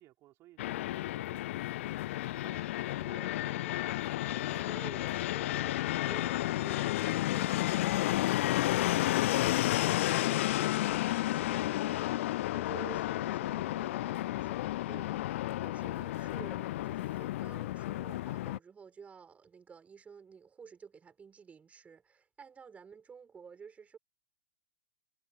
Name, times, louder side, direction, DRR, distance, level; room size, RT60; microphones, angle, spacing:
voice 1, 0.0-2.8 4.4-4.6 15.0-15.3, right 16 dB, 30° right, 5.1 m, -60 dB
Fixed-wing aircraft airplane, 0.6-18.6, left 15 dB, 50° left, 0.4 m, -32 dB
voice 2, 3.0-3.8 4.3-24.0, right 6 dB, 15° right, 5.3 m, -52 dB
figure-of-eight pair, 110°, 9 cm